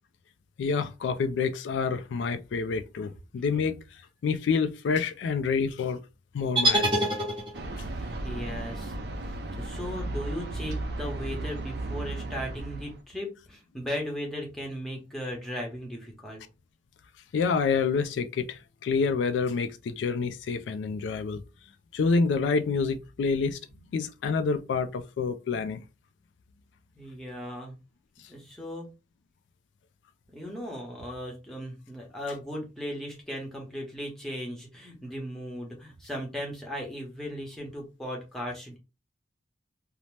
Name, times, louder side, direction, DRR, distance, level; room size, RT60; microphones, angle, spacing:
voice 1, 0.6-3.8 4.2-6.0 6.3-7.1 17.3-21.4 21.9-23.6 23.9-25.8, left 5 dB, 85° left, 0.3 m, -27 dB
sound 1, 6.6-7.9, right 1 dB, 25° right, 0.8 m, -25 dB
sound 2, 7.5-13.0, right 2 dB, 60° right, 0.4 m, -35 dB
voice 2, 8.0-9.0 9.2-16.4 26.9-27.7 28.3-28.9 30.3-38.8, equal, ahead, 0.8 m, -37 dB
2.7 x 2.0 x 3.2 m
head